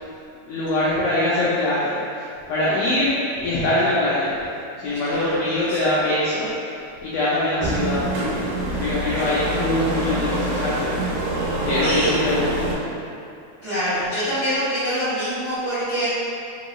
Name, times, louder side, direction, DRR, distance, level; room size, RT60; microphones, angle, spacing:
voice 1, 0.5-4.3 4.8-6.5 7.0-8.0 8.3-11.0 11.6-12.8, left 1 dB, 80° left, -9 dB, 1.4 m, -23 dB
voice 2, 4.8-5.8 9.2-9.3 11.8-12.1 13.6-16.1, equal, 55° right, -16 dB, 1.0 m, -26 dB
sound 1, 7.6-12.7, right 1 dB, 85° right, 2.1 m, -25 dB
4.6 x 2.9 x 3.0 m, 2.5 s
omnidirectional pair, 3.5 m